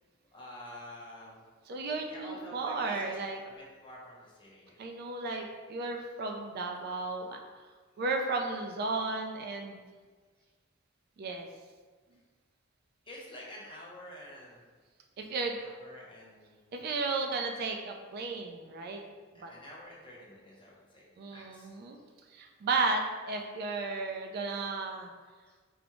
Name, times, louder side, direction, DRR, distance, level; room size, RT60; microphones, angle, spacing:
voice 1, 0.3-1.4 2.1-3.2 3.4-4.7 13.1-14.6 15.5-16.7 19.3-21.7 25.5-25.6, left 1 dB, 25° left, -5 dB, 0.8 m, -49 dB
voice 2, 1.7-3.4 4.8-7.4 8.0-9.8 11.2-11.5 15.2-15.6 16.7-19.0 19.4-19.5 21.2-22.0 22.3-25.1, right 3 dB, 50° right, 3 dB, 0.3 m, -34 dB
4.7 x 2.0 x 3.0 m, 1.5 s
head